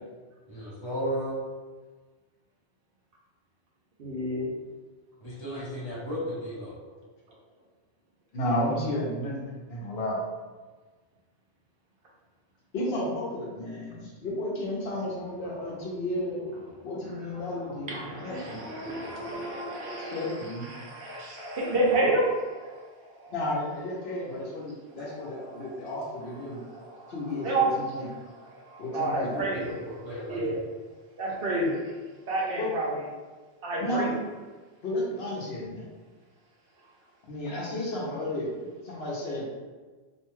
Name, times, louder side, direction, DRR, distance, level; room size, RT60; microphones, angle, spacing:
voice 1, 0.5-1.4 5.2-6.8 18.8-18.9 29.3-30.4, equal, 25° left, -8 dB, 0.9 m, -34 dB
voice 2, 4.0-4.5 17.3-17.4 17.9-22.8 23.1-23.3 25.0-25.8 26.5-27.2 27.4-27.7 28.4-29.7 30.3-30.6 31.2-31.9 32.3-33.0 33.6-34.1 38.9-39.0, right 2 dB, 65° right, -3 dB, 0.7 m, -30 dB
voice 3, 8.3-9.4 9.7-10.2 12.7-16.5 16.8-18.6 20.1-20.7 23.3-26.6 27.1-28.1 28.8-29.4 32.6-32.7 33.8-34.2 34.8-35.9 37.3-39.4, left 1 dB, 70° left, -4 dB, 0.9 m, -32 dB
2.5 x 2.2 x 3.0 m, 1.4 s
omnidirectional pair, 1.1 m